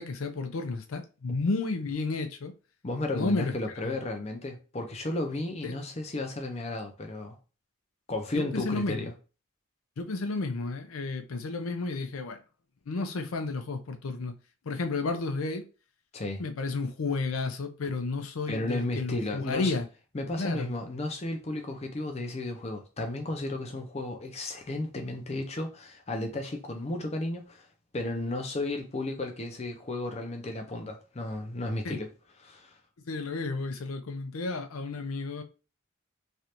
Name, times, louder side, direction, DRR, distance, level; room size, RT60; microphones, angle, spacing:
voice 1, 0.0-2.5 3.1-3.5 3.8-4.0 5.6-5.7 8.4-9.1 10.0-12.4 12.9-14.3 14.7-15.6 16.4-19.9 20.4-20.7 31.8-32.0 33.1-35.4, left 3 dB, 85° left, 0.5 m, -32 dB
voice 2, 2.8-7.4 8.1-9.1 16.1-16.4 18.5-19.7 20.1-27.7 27.9-32.1 32.4-32.7, left 2 dB, 30° left, 0.6 m, -33 dB
3.2 x 2.5 x 2.9 m
head